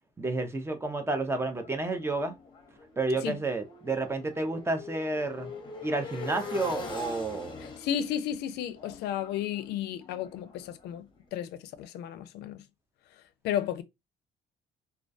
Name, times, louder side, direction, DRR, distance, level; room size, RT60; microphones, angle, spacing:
voice 1, 0.2-2.3 3.0-5.5 5.8-7.5, right 2 dB, 15° right, 0.4 m, -30 dB
Motorcycle, 1.2-11.0, left 4 dB, 30° left, 0.7 m, -43 dB
voice 2, 7.6-12.6 13.4-13.8, left 10 dB, 75° left, 0.4 m, -33 dB
2.3 x 2.2 x 2.5 m
cardioid pair, 110°, 17 cm